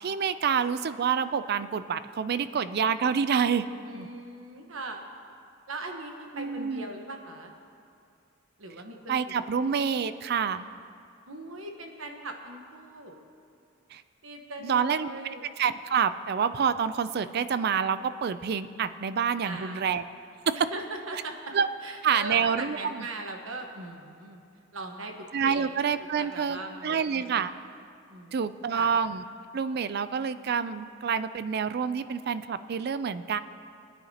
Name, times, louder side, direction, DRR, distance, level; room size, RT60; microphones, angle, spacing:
voice 1, 0.0-3.7 3.9-4.1 6.4-6.8 9.1-10.6 13.9-14.0 14.6-15.1 15.6-20.0 21.5-21.7 22.0-23.1 25.3-27.5 28.3-29.2 29.5-33.4, right 6 dB, 50° right, 13 dB, 0.4 m, -27 dB
voice 2, 3.8-5.1 5.7-7.5 8.6-9.7 11.3-13.2 14.2-15.5 19.4-19.9 20.5-21.5 21.8-24.4 24.7-25.1 25.4-25.7 26.2-27.5 28.1-28.4 28.7-28.9, right 2 dB, 85° right, 3 dB, 1.2 m, -40 dB
21.5 x 9.7 x 2.8 m, 2.5 s
head